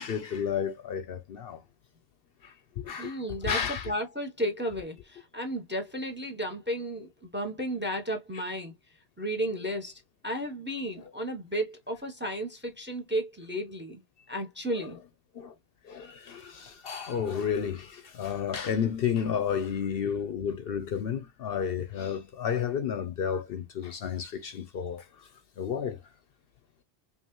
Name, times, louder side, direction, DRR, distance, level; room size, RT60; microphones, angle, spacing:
voice 1, 0.0-1.6 2.4-3.9 8.3-8.4 15.3-15.5 15.8-25.3 25.6-26.0, left 8 dB, 60° left, 0.7 m, -32 dB
voice 2, 3.0-8.7 9.2-14.0 14.3-15.0, equal, 10° right, 0.7 m, -33 dB
5.4 x 2.3 x 3.0 m
omnidirectional pair, 1.2 m